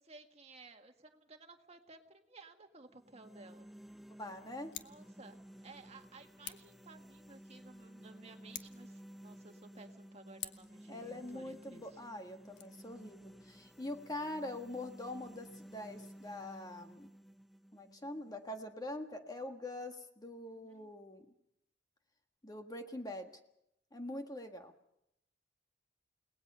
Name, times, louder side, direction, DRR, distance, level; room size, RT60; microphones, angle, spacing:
voice 1, 0.0-3.7 4.8-12.0 20.5-20.9, right 3 dB, 35° right, 5 dB, 1.8 m, -56 dB
sound 1, 2.9-18.9, equal, ahead, 0.7 m, -55 dB
voice 2, 4.2-4.7 10.9-17.1 17.7-21.2 22.4-23.3 23.9-24.7, left 1 dB, 20° left, 5 dB, 1.6 m, -44 dB
Scissors, 4.6-5.0 6.4-6.8 8.4-8.9 10.4-10.8 12.4-12.6, left 10 dB, 70° left, 1.2 m, -47 dB
30.0 x 19.0 x 5.6 m, 0.80 s
head